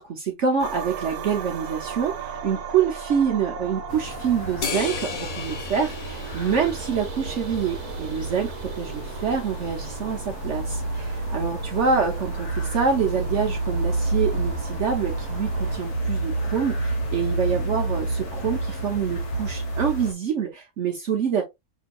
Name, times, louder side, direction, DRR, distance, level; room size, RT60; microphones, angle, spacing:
voice 1, 0.0-21.4, right 6 dB, 60° right, 1.0 m, -26 dB
sound 1, 0.6-15.8, right 6 dB, 85° right, 1.3 m, -37 dB
sound 2, 3.9-20.1, right 2 dB, 80° left, 1.6 m, -30 dB
sound 3, 4.6-7.3, left 5 dB, 45° left, 0.6 m, -34 dB
6.0 x 2.8 x 2.3 m
omnidirectional pair, 1.6 m